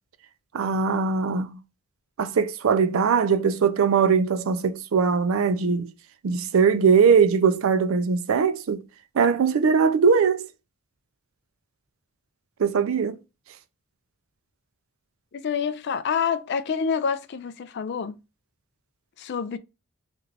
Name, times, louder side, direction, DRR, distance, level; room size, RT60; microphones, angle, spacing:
voice 1, 0.5-1.6 2.2-5.9 6.2-8.8 9.1-10.5 12.6-13.2, right 6 dB, 65° right, 0.4 m, -21 dB
voice 2, 15.3-18.1 19.2-19.6, left 6 dB, 50° left, 0.3 m, -27 dB
3.3 x 2.4 x 3.1 m
head